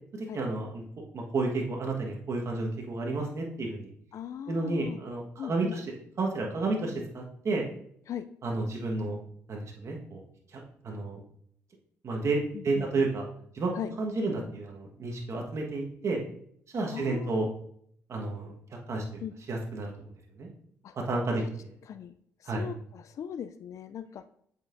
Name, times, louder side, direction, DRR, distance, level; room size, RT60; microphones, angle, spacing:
voice 1, 0.1-0.8 1.1-3.9 4.5-5.8 6.2-7.7 8.4-9.2 9.5-10.2 10.5-11.2 12.0-13.3 13.5-16.2 16.7-17.5 18.1-18.5 18.9-19.0 19.5-20.1 20.4-20.5 21.0-21.7 22.5-22.7, right 3 dB, 50° right, 0 dB, 1.4 m, -31 dB
voice 2, 4.1-5.0 5.4-5.8 8.1-8.3 12.5-13.1 13.7-13.9 16.9-17.5 19.2-19.3 20.8-20.9 21.4-21.5 21.8-22.2 22.4-24.2, left 9 dB, 60° left, 10 dB, 0.3 m, -39 dB
7.2 x 5.4 x 2.6 m, 0.67 s
cardioid pair, 70°, 6 cm